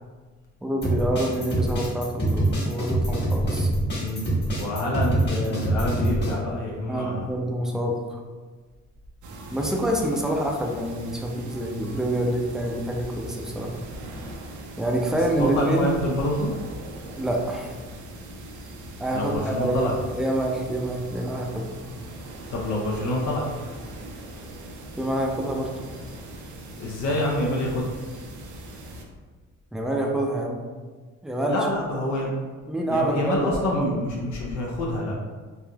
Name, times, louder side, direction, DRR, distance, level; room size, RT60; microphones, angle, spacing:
voice 1, 0.6-3.7 6.9-8.2 9.5-13.8 14.8-16.0 17.1-17.7 19.0-21.7 25.0-25.7 29.7-30.6 31.2-31.6 32.7-33.9, right 1 dB, ahead, 0 dB, 0.4 m, -26 dB
sound 1, 0.8-6.3, right 1 dB, 35° left, 1.4 m, -25 dB
voice 2, 4.0-7.3 15.4-16.5 19.1-20.0 22.5-23.5 26.8-27.9 31.5-32.3 32.9-35.2, left 1 dB, 70° left, -3 dB, 0.6 m, -27 dB
sound 2, 9.2-29.0, right 1 dB, 75° right, 0.6 m, -40 dB
3.3 x 2.6 x 2.2 m, 1.4 s
cardioid pair, 90°, 30 cm